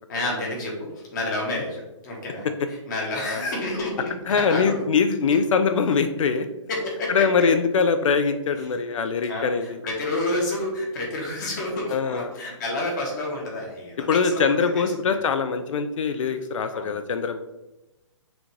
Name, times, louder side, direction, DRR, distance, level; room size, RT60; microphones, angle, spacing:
voice 1, 0.1-4.9 6.7-7.3 8.6-8.7 9.3-14.6 15.0-15.2 16.7-16.9, left 1 dB, 35° left, -1 dB, 1.2 m, -29 dB
voice 2, 4.3-6.5 7.1-9.8 11.9-12.3 14.1-17.4, left 5 dB, 80° left, 9 dB, 0.4 m, -22 dB
6.1 x 2.6 x 3.1 m, 0.98 s
hypercardioid pair, 160°, 16 cm